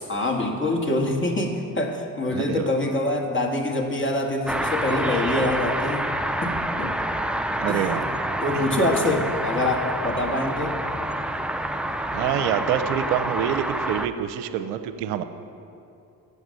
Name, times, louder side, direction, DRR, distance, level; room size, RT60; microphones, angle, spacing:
voice 1, 0.1-6.1 6.4-6.9 7.7-8.0 8.4-10.7, left 1 dB, 25° left, 1 dB, 1.7 m, -25 dB
voice 2, 2.3-2.7 7.6-8.0 8.5-8.8 12.1-15.2, right 10 dB, 80° right, 10 dB, 0.6 m, -26 dB
sound 1, 4.5-14.1, right 1 dB, ahead, 0.4 m, -27 dB
8.1 x 7.1 x 8.1 m, 2.6 s
hypercardioid pair, 45°, 48 cm